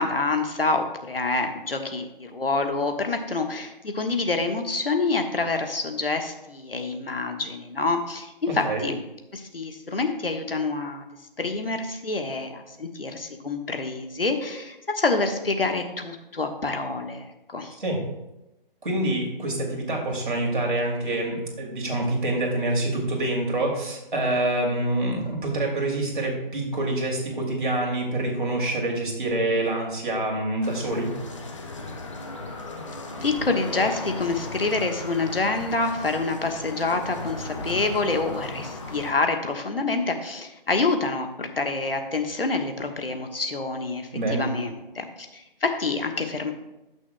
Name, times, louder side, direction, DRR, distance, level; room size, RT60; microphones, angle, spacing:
voice 1, 0.0-9.0 9.3-11.1 11.4-17.7 33.2-45.0 45.3-46.5, left 3 dB, 75° left, 5 dB, 1.3 m, -27 dB
voice 2, 8.5-8.8 17.8-18.0 18.8-31.1 44.1-44.5, right 2 dB, 55° right, 0 dB, 2.5 m, -26 dB
sound 1, 30.6-39.1, left 2 dB, 35° left, 0.9 m, -36 dB
17.0 x 6.3 x 2.2 m, 0.94 s
figure-of-eight pair, 155°, 29 cm